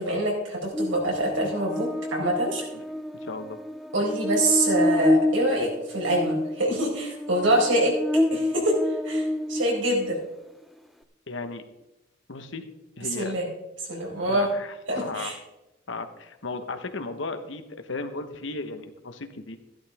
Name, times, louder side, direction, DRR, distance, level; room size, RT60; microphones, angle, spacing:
voice 1, 0.0-2.6 3.9-8.0 8.3-8.8 9.0-10.2 13.1-13.5 13.9-14.5 14.9-15.3, right 1 dB, 75° right, -2 dB, 4.7 m, -25 dB
Buzz, 0.7-10.2, left 1 dB, ahead, 0.5 m, -28 dB
voice 2, 3.2-3.6 11.3-11.6 12.3-12.7 13.0-13.3 14.3-15.3 15.9-19.6, left 3 dB, 70° left, 8 dB, 1.1 m, -35 dB
14.0 x 12.0 x 3.5 m, 0.94 s
head